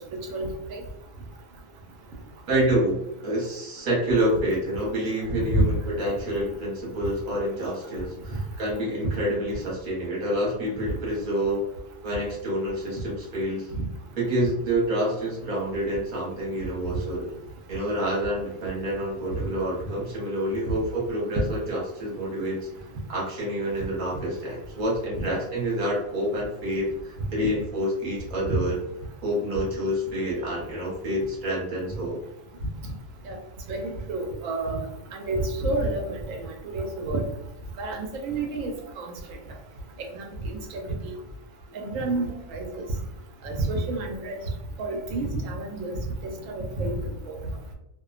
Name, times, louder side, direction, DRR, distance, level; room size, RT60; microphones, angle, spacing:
voice 1, 0.3-0.8 5.3-5.7 25.2-25.3 28.5-28.6 33.3-33.4 33.7-34.8 35.1-37.2 37.8-39.1 40.0-41.1 41.7-42.8 43.4-44.4 44.8-45.9 46.2-47.4, right 2 dB, 80° right, 2 dB, 1.0 m, -29 dB
voice 2, 2.5-11.6 12.0-13.7 14.2-17.3 17.7-22.7 23.1-28.8 29.2-32.2, equal, 45° right, -4 dB, 0.9 m, -28 dB
2.5 x 2.1 x 2.4 m, 0.84 s
omnidirectional pair, 1.4 m